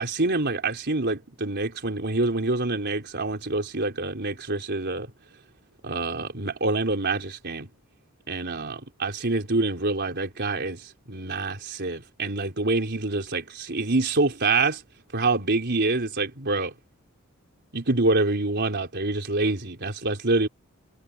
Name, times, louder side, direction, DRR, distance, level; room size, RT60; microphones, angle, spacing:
voice 1, 0.0-5.1 5.8-7.7 8.3-10.8 11.1-14.8 15.1-16.7 17.7-20.5, right 3 dB, 55° right, 4.3 m, -26 dB
head